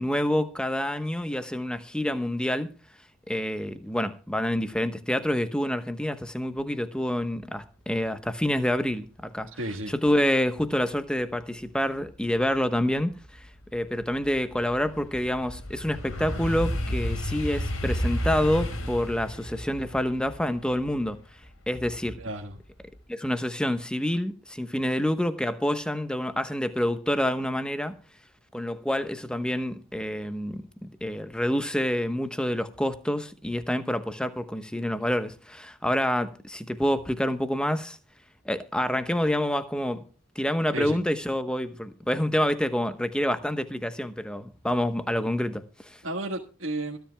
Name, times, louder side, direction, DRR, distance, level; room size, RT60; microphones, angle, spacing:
voice 1, 0.0-2.7 3.3-9.5 9.9-21.2 21.7-22.2 23.1-27.9 28.5-38.0 38.4-40.0 40.3-46.0, left 1 dB, 5° left, 1.0 m, -27 dB
voice 2, 9.6-9.9 22.2-22.6 40.7-41.0 46.0-47.0, right 1 dB, 65° right, 1.5 m, -32 dB
sound 1, 12.5-12.6 13.1-22.2 22.6-23.0, equal, 80° left, 4.2 m, -32 dB
25.5 x 10.5 x 2.3 m
head